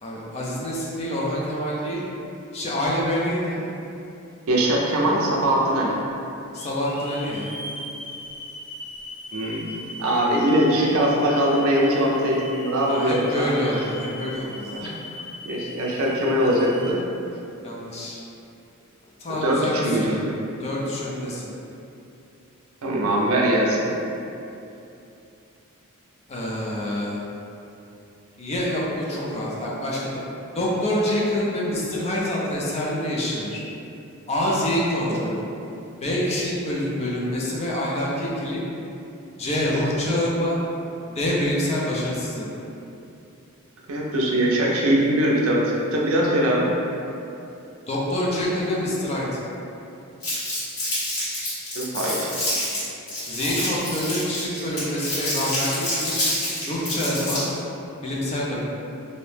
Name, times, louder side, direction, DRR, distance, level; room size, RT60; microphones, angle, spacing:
voice 1, 0.0-2.0 2.5-3.6 6.5-7.5 12.9-14.8 17.6-18.2 19.2-20.2 20.6-21.5 26.3-27.2 28.4-30.2 30.5-33.6 34.3-35.4 36.0-38.6 39.4-40.6 41.1-42.5 47.9-49.3 53.3-56.1 56.7-57.4 58.0-58.6, left 1 dB, 30° left, -5 dB, 0.4 m, -26 dB
voice 2, 4.5-6.0 9.3-13.6 14.8-14.9 15.4-17.0 19.3-20.3 22.8-23.9 35.1-35.2 43.9-46.7 51.6-52.3, right 1 dB, 75° right, -3 dB, 0.5 m, -22 dB
Hiss / Alarm, 5.5-5.6 6.5-16.9, left 2 dB, 65° left, 1.1 m, -39 dB
Crumpling crinkling, 50.2-57.6, left 1 dB, 85° left, 1.3 m, -27 dB
2.6 x 2.0 x 3.2 m, 2.7 s
head